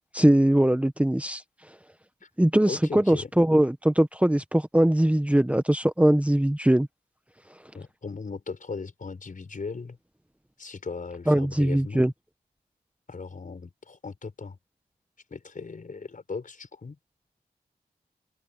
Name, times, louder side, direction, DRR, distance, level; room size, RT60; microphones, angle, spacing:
voice 1, 0.1-1.4 2.4-6.9 11.3-12.1, right 1 dB, 10° right, 1.1 m, -21 dB
voice 2, 2.7-3.3 7.7-10.0 10.6-12.1 13.1-14.6 15.3-17.0, left 4 dB, 55° left, 5.3 m, -38 dB
open air
cardioid pair, 65°, 16 cm